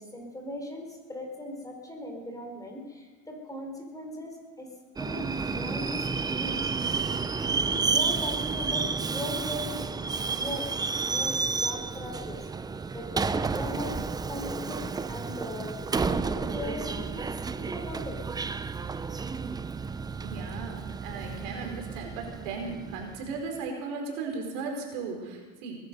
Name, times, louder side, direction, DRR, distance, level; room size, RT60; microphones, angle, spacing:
voice 1, 0.0-4.7 5.0-6.7 7.6-9.9 10.2-12.5 12.9-18.2, left 1 dB, 10° left, 2 dB, 4.5 m, -39 dB
Subway metro underground, 5.0-23.4, right 4 dB, 10° right, 0.5 m, -31 dB
voice 2, 20.2-25.9, right 4 dB, 75° right, 1 dB, 4.6 m, -36 dB
21.0 x 11.5 x 5.4 m, 1.3 s
supercardioid pair, 100°, 36 cm